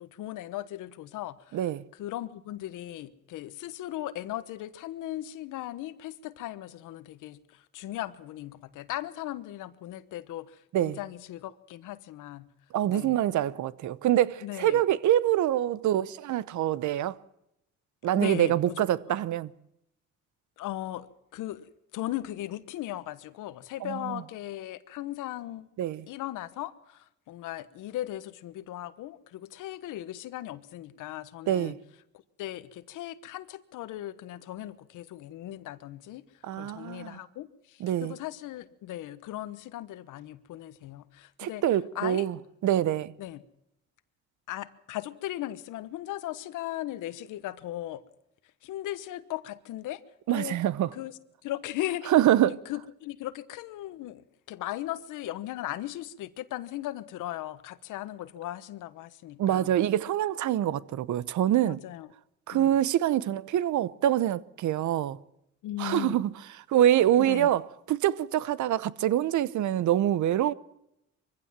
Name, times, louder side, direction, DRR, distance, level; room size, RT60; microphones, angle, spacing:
voice 1, 0.0-1.4 2.0-7.4 7.7-10.5 10.8-12.5 12.9-13.2 14.4-14.8 18.1-18.8 20.6-21.1 21.3-21.7 21.9-25.7 26.1-27.0 27.3-31.8 32.4-36.2 36.6-37.5 38.0-41.6 41.9-42.2 43.2-43.4 44.5-48.0 48.6-50.0 50.3-50.6 50.9-51.1 51.4-52.1 52.7-59.7 61.7-62.1 62.5-62.7 65.6-66.2 67.2-67.5, left 14 dB, 90° left, 1.2 m, -37 dB
voice 2, 1.5-1.8 10.7-11.0 12.7-17.2 18.0-19.5 23.8-24.2 25.8-26.1 31.5-31.8 36.4-37.2 37.8-38.2 41.4-43.1 50.3-50.9 52.1-52.6 59.4-61.8 62.5-65.2 65.8-70.5, right 12 dB, 75° right, 0.9 m, -25 dB
23.0 x 15.5 x 7.5 m
cardioid pair, 90°, 30 cm